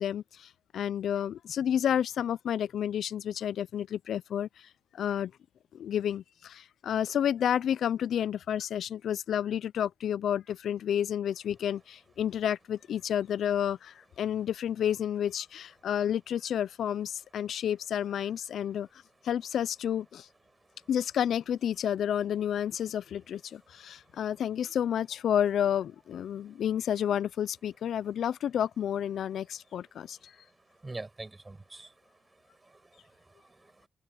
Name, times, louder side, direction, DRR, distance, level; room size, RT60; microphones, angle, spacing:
voice 1, 0.0-5.3 5.7-20.3 20.9-30.4, left 9 dB, 65° left, 0.4 m, -30 dB
voice 2, 30.8-31.9 32.6-33.9, right 2 dB, 15° right, 5.5 m, -45 dB
cardioid pair, 130°, 0 cm